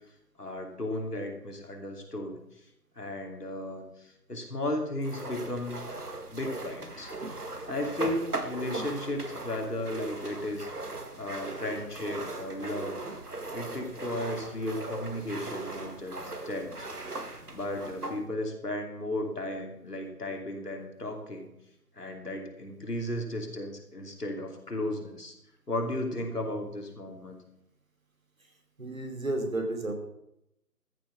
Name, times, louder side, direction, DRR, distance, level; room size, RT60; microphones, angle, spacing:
voice 1, 0.4-2.7 3.0-5.8 6.3-13.0 13.5-16.2 16.4-16.9 17.5-21.5 22.0-25.3 25.7-27.4, left 1 dB, 75° left, 3 dB, 3.1 m, -35 dB
sound 1, 5.0-18.2, right 2 dB, 70° right, 1.9 m, -38 dB
voice 2, 28.8-30.0, right 1 dB, 55° right, 4 dB, 3.0 m, -32 dB
14.0 x 7.0 x 6.4 m, 0.81 s
figure-of-eight pair, 165°, 48 cm